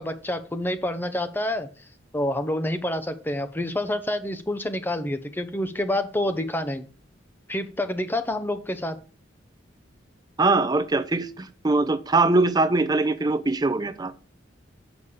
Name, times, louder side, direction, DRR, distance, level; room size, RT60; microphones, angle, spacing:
voice 1, 0.0-1.7 2.1-6.9 7.5-9.0, left 1 dB, 10° left, 9 dB, 0.7 m, -28 dB
voice 2, 10.4-14.1, right 3 dB, 20° right, 11 dB, 0.5 m, -22 dB
7.1 x 5.2 x 6.7 m, 0.40 s
head